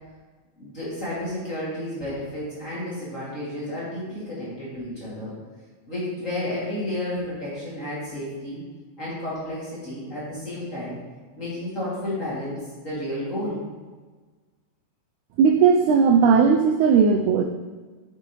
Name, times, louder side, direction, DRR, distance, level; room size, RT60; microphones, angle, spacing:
voice 1, 0.6-5.3 5.9-8.6 9.0-11.0 11.4-13.6, left 1 dB, 25° left, -9 dB, 2.3 m, -31 dB
voice 2, 15.4-17.4, right 6 dB, 85° right, 5 dB, 1.7 m, -17 dB
8.8 x 6.8 x 3.1 m, 1.4 s
omnidirectional pair, 3.9 m